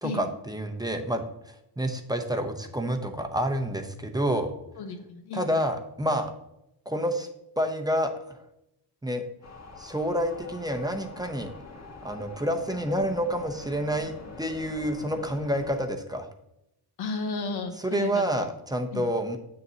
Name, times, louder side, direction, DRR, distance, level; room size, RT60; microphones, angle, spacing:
voice 1, 0.0-1.2 1.8-4.5 5.3-6.3 6.9-7.3 7.6-8.4 9.0-9.3 9.8-11.5 12.0-16.3 17.8-19.4, equal, 10° right, 4 dB, 0.7 m, -28 dB
voice 2, 4.8-5.5 17.0-18.5 18.9-19.0, left 3 dB, 85° left, 6 dB, 1.0 m, -34 dB
Wind Roar, 9.4-15.8, left 3 dB, 45° left, 1.5 m, -45 dB
7.4 x 6.7 x 2.8 m, 0.83 s
cardioid pair, 80°, 38 cm